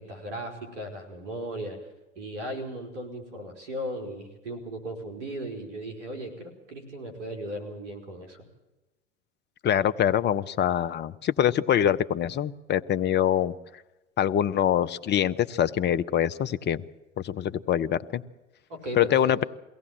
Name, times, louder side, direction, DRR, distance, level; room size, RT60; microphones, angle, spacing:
voice 1, 0.0-1.8 2.1-8.4 18.7-19.5, right 1 dB, 75° right, 6 dB, 5.0 m, -37 dB
voice 2, 9.6-13.5 14.2-16.8 17.2-18.2 18.9-19.4, left 10 dB, 30° left, 14 dB, 0.9 m, -24 dB
22.5 x 17.5 x 7.5 m, 1.0 s
hypercardioid pair, 95°, 36 cm